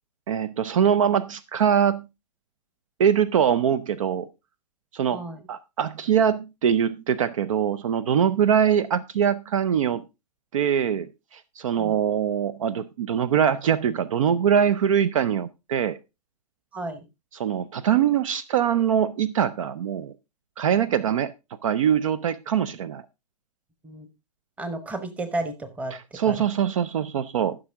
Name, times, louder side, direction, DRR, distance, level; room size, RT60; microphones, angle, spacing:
voice 1, 0.3-2.0 3.0-4.3 4.9-5.2 5.5-10.0 10.5-16.0 17.3-20.1 20.6-21.3 21.6-23.0 25.9-27.6, right 8 dB, 55° right, 18 dB, 0.6 m, -23 dB
voice 2, 5.1-5.4 11.8-12.0 16.7-17.0 23.8-24.1 24.6-25.9 26.3-26.4, right 2 dB, 5° right, 10 dB, 1.0 m, -32 dB
14.5 x 6.2 x 3.6 m, 0.25 s
hypercardioid pair, 145°, 21 cm